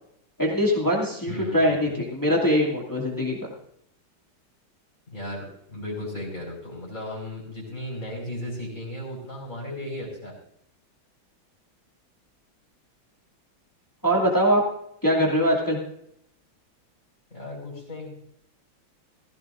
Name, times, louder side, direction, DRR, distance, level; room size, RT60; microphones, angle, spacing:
voice 1, 0.4-3.4 14.0-14.6 15.0-15.8, equal, 10° left, -3 dB, 2.4 m, -22 dB
voice 2, 1.3-1.8 5.1-10.3 17.3-18.2, left 1 dB, 40° left, -2 dB, 5.1 m, -35 dB
17.0 x 16.0 x 2.6 m, 0.73 s
omnidirectional pair, 2.2 m